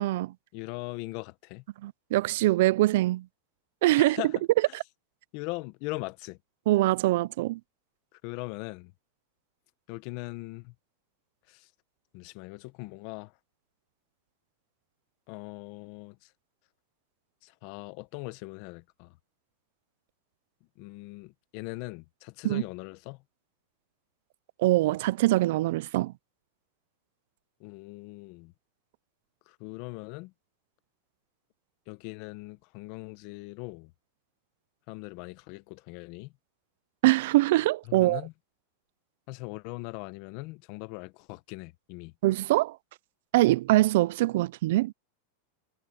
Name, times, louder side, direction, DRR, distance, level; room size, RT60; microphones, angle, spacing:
voice 1, 0.0-0.3 1.8-3.3 3.8-4.2 4.7-4.8 6.7-7.6 22.4-22.6 24.6-26.1 37.0-38.2 42.2-42.8 43.3-44.9, right 17 dB, 65° right, 0.5 m, -23 dB
voice 2, 0.5-1.6 4.0-4.4 4.7-4.8 5.3-6.4 8.1-8.9 9.9-10.7 11.5-11.7 12.1-13.4 15.3-16.3 17.4-19.2 20.8-23.2 27.6-28.5 29.5-30.3 31.9-33.9 34.9-36.3 37.9-38.3 39.3-42.1, left 23 dB, 50° left, 1.2 m, -40 dB
supercardioid pair, 140°, 0 cm